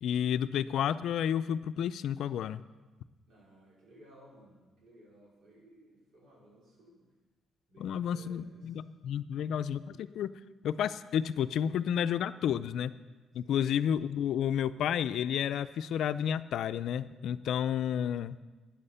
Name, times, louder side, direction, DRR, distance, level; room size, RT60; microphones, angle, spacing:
voice 1, 0.0-2.6 7.8-10.3 10.6-12.9 13.3-18.4, left 9 dB, 75° left, 13 dB, 0.4 m, -31 dB
voice 2, 3.3-7.0 7.7-8.6 9.3-9.5 13.4-13.6 17.7-17.8, right 1 dB, 65° right, -4 dB, 4.8 m, -58 dB
14.0 x 9.2 x 5.6 m, 1.2 s
cardioid pair, 90°, 0 cm